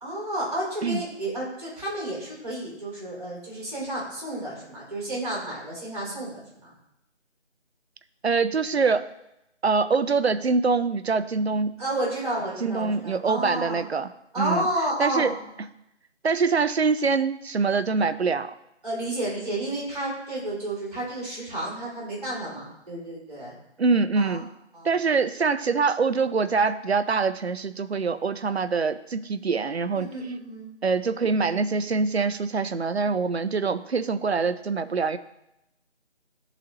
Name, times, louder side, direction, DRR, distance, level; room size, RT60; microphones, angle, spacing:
voice 1, 0.0-6.7 11.8-13.8 14.3-15.4 18.8-23.5 24.1-24.4 24.7-24.9 29.9-30.7, right 1 dB, 30° right, -5 dB, 2.4 m, -31 dB
voice 2, 8.2-9.1 9.6-11.7 12.6-14.1 14.4-14.6 15.0-15.3 16.2-18.5 23.8-24.5 24.8-30.1 30.8-35.2, right 4 dB, 60° right, 12 dB, 0.5 m, -24 dB
11.0 x 3.9 x 2.9 m, 0.85 s
figure-of-eight pair, 160°, 36 cm